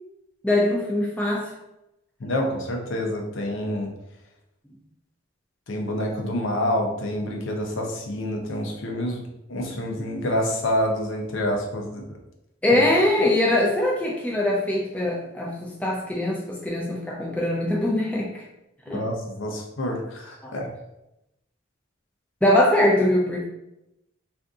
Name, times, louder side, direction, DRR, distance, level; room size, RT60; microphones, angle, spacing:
voice 1, 0.4-1.5 12.6-18.4 18.9-19.0 20.4-20.5 22.4-23.4, left 1 dB, 5° left, -3 dB, 0.4 m, -22 dB
voice 2, 2.2-3.9 5.7-9.2 9.5-12.2 12.7-12.8 18.9-20.7, left 1 dB, 80° left, 1 dB, 0.6 m, -27 dB
2.5 x 2.5 x 3.5 m, 0.88 s
head